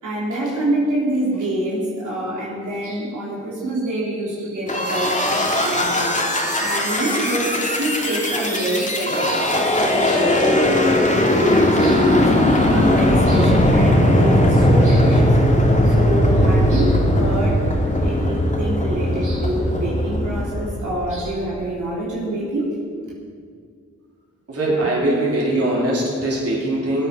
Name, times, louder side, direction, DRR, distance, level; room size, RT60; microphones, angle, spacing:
voice 1, 0.0-6.2 6.6-15.4 15.9-17.6 18.0-22.7, right 1 dB, 80° right, -6 dB, 3.8 m, -26 dB
sound 1, 4.7-21.3, left 1 dB, 25° left, 2.5 m, -18 dB
voice 2, 24.5-27.1, right 1 dB, 55° right, -4 dB, 3.7 m, -21 dB
17.0 x 9.3 x 5.4 m, 2.1 s
cardioid pair, 55°, 30 cm